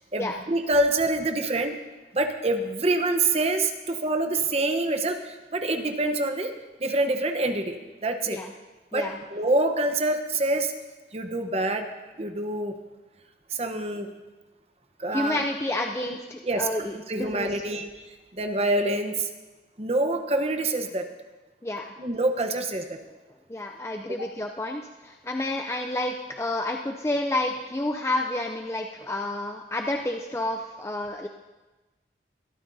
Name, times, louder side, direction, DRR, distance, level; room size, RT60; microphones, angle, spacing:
voice 1, 0.1-1.8 2.1-6.5 6.8-8.4 8.9-10.7 11.1-11.9 12.2-12.7 13.5-14.1 15.0-15.4 16.4-19.3 19.8-21.1 22.0-23.0 24.1-24.3, right 2 dB, 35° right, 6 dB, 0.9 m, -26 dB
voice 2, 15.1-17.5 21.6-21.9 23.5-31.3, left 1 dB, 15° left, 3 dB, 0.4 m, -30 dB
22.0 x 13.0 x 2.7 m, 1.2 s
head